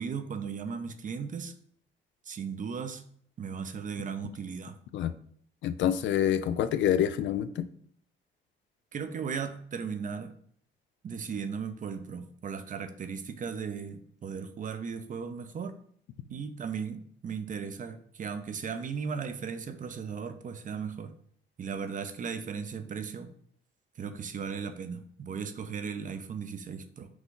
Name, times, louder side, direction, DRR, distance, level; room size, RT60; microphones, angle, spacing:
voice 1, 0.0-1.5 2.2-3.0 3.4-4.8 8.9-10.3 11.0-15.7 16.3-21.1 21.6-23.3 24.0-27.1, right 6 dB, 40° right, 9 dB, 0.5 m, -36 dB
voice 2, 5.6-7.7, left 10 dB, 70° left, 12 dB, 0.4 m, -27 dB
6.0 x 2.4 x 3.8 m, 0.62 s
cardioid pair, 90°, 20 cm